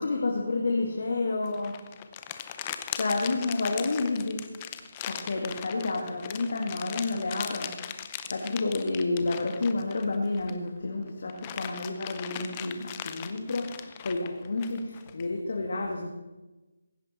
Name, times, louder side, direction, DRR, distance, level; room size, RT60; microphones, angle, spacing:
voice 1, 0.0-1.7 2.9-4.4 5.0-7.9 8.2-16.1, left 3 dB, 60° left, 1 dB, 1.9 m, -30 dB
sound 1, 1.4-10.7 11.1-15.2, left 10 dB, 20° left, 0.6 m, -39 dB
16.0 x 9.8 x 4.3 m, 1.1 s
figure-of-eight pair, 165°, 0 cm